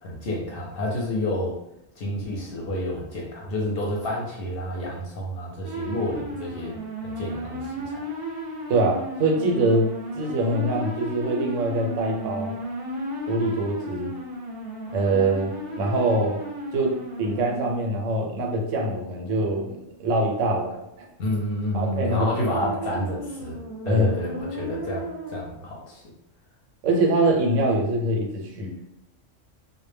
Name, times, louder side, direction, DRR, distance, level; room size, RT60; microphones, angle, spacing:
voice 1, 0.0-1.6 2.0-6.7 7.0-8.0 21.2-23.6 23.8-26.0, left 1 dB, 60° left, -2 dB, 0.7 m, -29 dB
sound 1, 5.6-18.0 22.1-25.4, right 1 dB, 50° right, 0.7 m, -34 dB
voice 2, 8.7-9.9 10.2-12.5 13.3-14.1 14.9-15.5 15.8-16.4 16.7-20.8 21.7-22.3 22.6-22.7 22.9-23.0 23.9-24.1 26.8-28.8, right 2 dB, 85° right, 0 dB, 1.0 m, -24 dB
2.1 x 2.1 x 3.2 m, 0.81 s
omnidirectional pair, 1.3 m